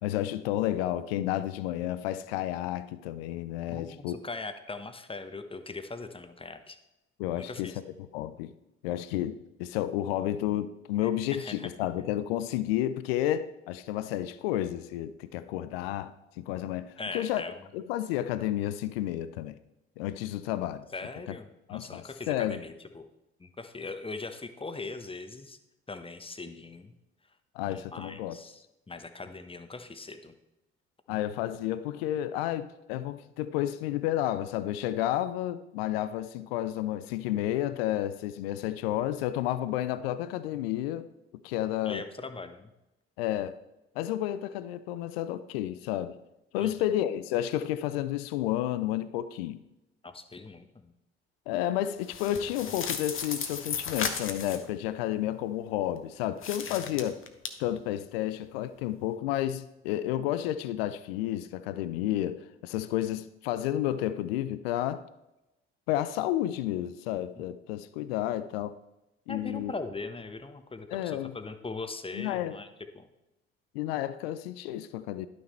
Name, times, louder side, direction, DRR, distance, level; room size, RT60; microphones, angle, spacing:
voice 1, 0.0-4.2 7.2-7.7 8.1-8.5 8.8-17.4 17.7-19.5 20.0-20.8 21.7-22.6 27.5-28.4 31.1-41.1 41.4-42.0 43.2-43.6 44.0-46.2 46.5-49.6 51.5-57.2 57.6-65.0 65.9-68.8 69.3-69.7 70.9-71.3 72.2-72.6 73.7-75.3, left 13 dB, 80° left, 0.5 m, -31 dB
voice 2, 3.7-6.8 7.4-7.7 11.3-11.7 17.0-17.6 20.9-23.1 23.4-25.6 25.9-26.9 27.7-30.3 41.8-42.7 46.6-46.7 50.0-50.9 56.7-56.8 67.4-67.5 69.3-72.7 72.9-73.1, left 3 dB, 20° left, 1.1 m, -40 dB
sound 1, 52.0-54.7 56.4-57.5, left 6 dB, 45° left, 1.2 m, -35 dB
11.0 x 6.2 x 4.3 m
hypercardioid pair, 50°, 29 cm